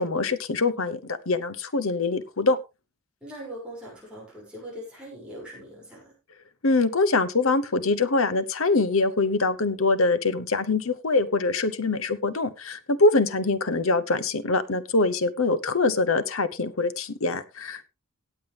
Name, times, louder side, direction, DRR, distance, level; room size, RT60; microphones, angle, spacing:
voice 1, 0.0-2.6 6.6-17.9, left 3 dB, 70° left, 14 dB, 1.0 m, -24 dB
voice 2, 3.2-6.1, equal, 5° right, -5 dB, 6.2 m, -41 dB
18.0 x 7.7 x 3.4 m, 0.26 s
head